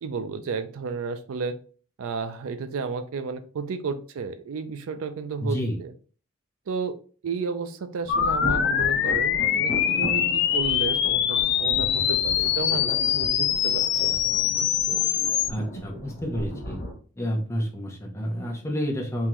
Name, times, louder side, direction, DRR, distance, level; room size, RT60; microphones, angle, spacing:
voice 1, 0.0-1.6 2.0-5.9 6.7-7.0 7.2-14.2, right 4 dB, 70° right, 10 dB, 0.4 m, -32 dB
voice 2, 5.4-5.8 15.5-16.8 17.2-19.3, equal, 15° left, 0 dB, 0.7 m, -29 dB
sound 1, 8.0-16.9, equal, 35° left, 1.1 m, -36 dB
sound 2, 8.1-15.5, left 10 dB, 50° left, 0.3 m, -23 dB
3.7 x 2.8 x 3.0 m, 0.40 s
head